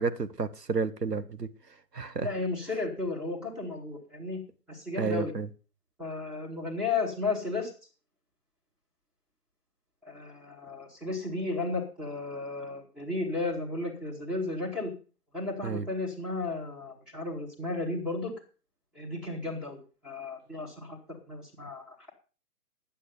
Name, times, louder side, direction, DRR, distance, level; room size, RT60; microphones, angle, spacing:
voice 1, 0.0-1.5 1.9-2.3 5.0-5.5 15.6-15.9, right 5 dB, 90° right, 1.3 m, -31 dB
voice 2, 2.2-4.4 4.7-5.3 6.0-7.7 10.0-14.9 15.3-18.3 18.9-19.8 20.0-22.1, left 3 dB, ahead, 1.0 m, -34 dB
10.5 x 7.5 x 6.8 m
figure-of-eight pair, 145°, 47 cm